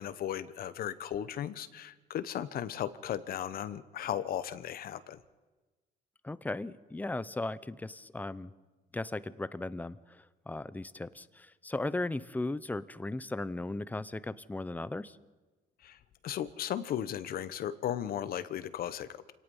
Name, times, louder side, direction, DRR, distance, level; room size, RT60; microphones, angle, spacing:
voice 1, 0.0-5.2 15.8-19.3, left 10 dB, 60° left, 14 dB, 1.1 m, -36 dB
voice 2, 6.2-8.5 8.9-15.2, left 2 dB, 10° left, 16 dB, 0.7 m, -37 dB
27.5 x 18.5 x 5.6 m, 1.2 s
cardioid pair, 110°, 17 cm